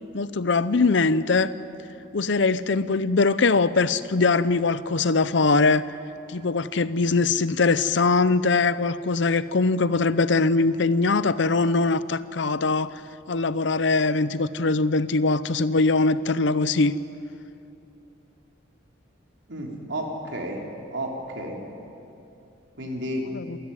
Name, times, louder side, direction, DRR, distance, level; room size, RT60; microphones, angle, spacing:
voice 1, 0.1-1.5 2.1-5.8 6.3-12.9 13.3-16.9 23.3-23.6, left 3 dB, 65° left, 16 dB, 0.7 m, -22 dB
voice 2, 19.5-20.6 20.9-21.6 22.8-23.3, equal, 65° right, 1 dB, 3.5 m, -31 dB
26.5 x 13.5 x 9.7 m, 2.7 s
head